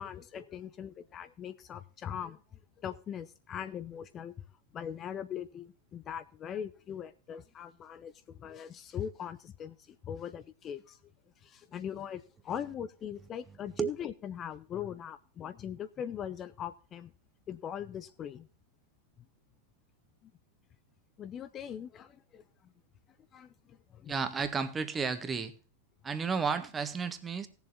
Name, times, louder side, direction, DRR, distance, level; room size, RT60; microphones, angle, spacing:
voice 1, 0.0-2.4 2.8-4.3 4.7-11.0 11.4-17.1 17.5-18.5 21.2-22.4 23.3-24.1, left 9 dB, 30° left, 0.7 m, -41 dB
voice 2, 24.1-25.5 26.0-27.5, right 5 dB, 20° right, 1.5 m, -32 dB
18.0 x 7.2 x 3.9 m
figure-of-eight pair, 90°, 0 cm